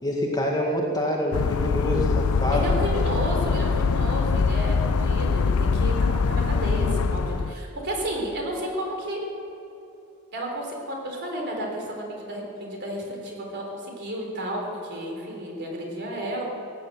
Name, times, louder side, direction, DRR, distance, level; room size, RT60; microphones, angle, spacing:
voice 1, 0.0-2.6, left 1 dB, 20° left, -1 dB, 2.0 m, -26 dB
sound 1, 1.3-7.5, left 5 dB, 85° left, 0.5 m, -23 dB
voice 2, 2.5-9.3 10.3-16.4, right 1 dB, 50° right, 0 dB, 3.8 m, -32 dB
17.5 x 9.4 x 7.9 m, 3.0 s
head